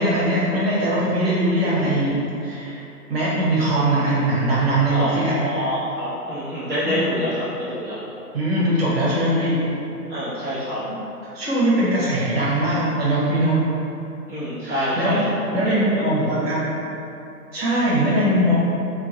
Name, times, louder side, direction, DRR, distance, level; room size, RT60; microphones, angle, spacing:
voice 1, 0.0-2.8 3.1-5.4 6.8-7.2 8.3-9.6 11.3-13.6 14.6-15.2 15.5-16.7 17.5-18.5, right 1 dB, 40° right, -8 dB, 1.1 m, -21 dB
voice 2, 4.9-8.0 10.1-10.8 14.3-15.5 16.0-16.5, equal, 15° right, -20 dB, 0.5 m, -26 dB
4.7 x 2.2 x 2.8 m, 2.8 s
figure-of-eight pair, 135°, 48 cm